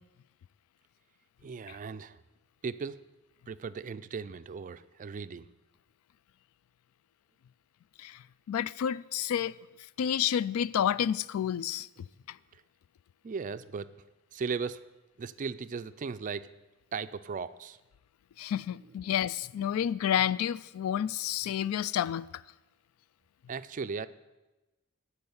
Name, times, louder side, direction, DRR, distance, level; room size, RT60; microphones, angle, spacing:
voice 1, 1.4-2.2 2.6-3.0 3.5-5.5 12.5-12.6 13.2-14.0 14.3-14.8 15.2-16.5 16.9-17.8 18.8-19.0 23.5-24.1, right 5 dB, 35° right, 0.3 m, -37 dB
voice 2, 8.5-9.6 10.0-11.9 12.3-12.4 18.4-22.3, left 9 dB, 85° left, 0.3 m, -30 dB
12.5 x 4.7 x 8.0 m
head